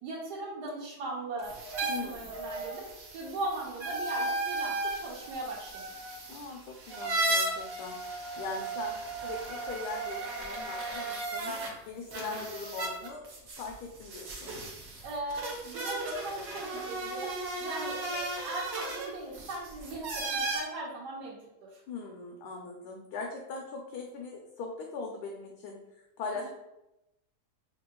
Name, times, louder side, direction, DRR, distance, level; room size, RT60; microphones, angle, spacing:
voice 1, 0.0-5.8 15.0-17.3 17.6-21.8, right 2 dB, 90° right, -6 dB, 1.3 m, -39 dB
sound 1, 1.4-11.7 12.1-20.6, right 2 dB, 60° right, 1.2 m, -35 dB
voice 2, 1.9-2.3 6.3-8.0 8.4-13.3 13.6-14.5 21.9-26.5, left 4 dB, 80° left, 1 dB, 1.2 m, -40 dB
5.2 x 2.8 x 2.2 m, 0.90 s
omnidirectional pair, 1.7 m